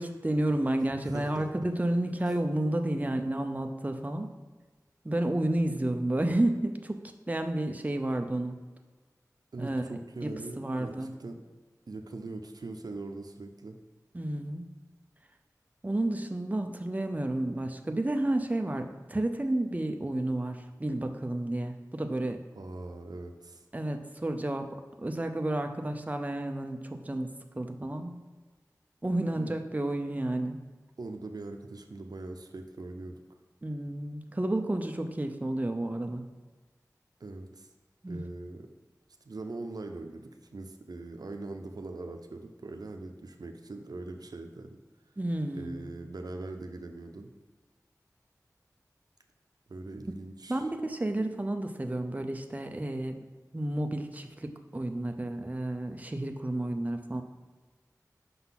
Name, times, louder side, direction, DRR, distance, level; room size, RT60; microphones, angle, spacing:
voice 1, 0.0-4.3 5.0-7.0 7.3-8.6 9.6-9.8 10.2-11.1 14.1-14.6 15.8-22.4 23.7-28.2 29.0-30.6 33.6-36.3 38.0-38.3 45.2-45.9 50.5-53.2 53.5-57.2, right 1 dB, 25° right, 6 dB, 0.5 m, -31 dB
voice 2, 1.0-1.5 9.5-11.4 11.9-13.8 22.6-23.7 29.3-29.5 31.0-33.2 37.2-37.7 38.1-38.7 39.2-44.8 45.6-47.3 49.7-50.6, right 2 dB, 85° right, 5 dB, 0.5 m, -41 dB
5.7 x 4.0 x 5.7 m, 1.3 s
wide cardioid pair, 50°, 6 cm